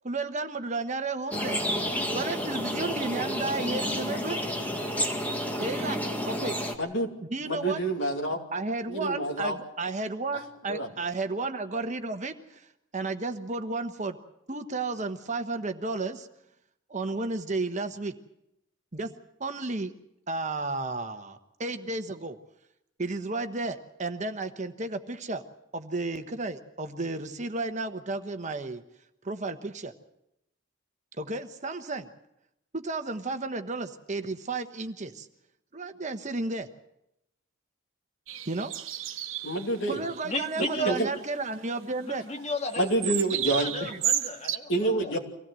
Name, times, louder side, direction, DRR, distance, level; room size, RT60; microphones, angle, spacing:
voice 1, 0.0-1.6 2.1-4.7 5.6-6.0 6.3-6.6 7.3-7.8 8.5-12.7 12.9-14.2 14.5-16.3 16.9-18.1 18.9-19.1 19.4-19.9 20.3-22.4 23.0-25.4 25.7-28.8 29.2-29.9 31.2-32.1 32.7-35.3 35.7-36.7 38.5-38.7 39.9-42.2 43.8-44.0, right 3 dB, 35° right, 8 dB, 1.1 m, -33 dB
sound 1, 1.3-6.7, equal, 10° left, 1.8 m, -30 dB
voice 2, 6.8-7.1 7.5-8.4 8.9-9.6 10.7-10.9 39.4-40.0 40.9-41.1 42.8-43.7 44.7-45.2, right 2 dB, 65° left, 3 dB, 2.8 m, -27 dB
sound 2, 38.3-39.7 40.1-40.2 40.5-41.2 42.7-44.6, right 10 dB, 75° right, 1.0 m, -32 dB
voice 3, 40.2-41.2 42.0-45.1, left 1 dB, 35° left, 3 dB, 1.9 m, -34 dB
24.5 x 16.5 x 7.6 m, 0.82 s
head